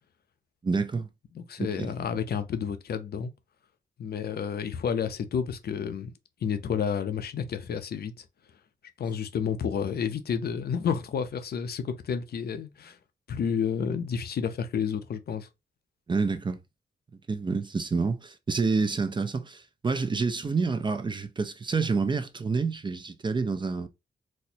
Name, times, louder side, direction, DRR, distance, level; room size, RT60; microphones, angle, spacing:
voice 1, 0.6-1.1 1.6-1.9 16.1-16.6 17.3-23.9, right 4 dB, 25° right, 0.4 m, -28 dB
voice 2, 1.3-3.3 4.0-6.1 6.4-8.2 9.0-13.0 13.3-15.5, left 7 dB, 65° left, 0.5 m, -30 dB
4.2 x 2.1 x 2.7 m
wide cardioid pair, 110°, 18 cm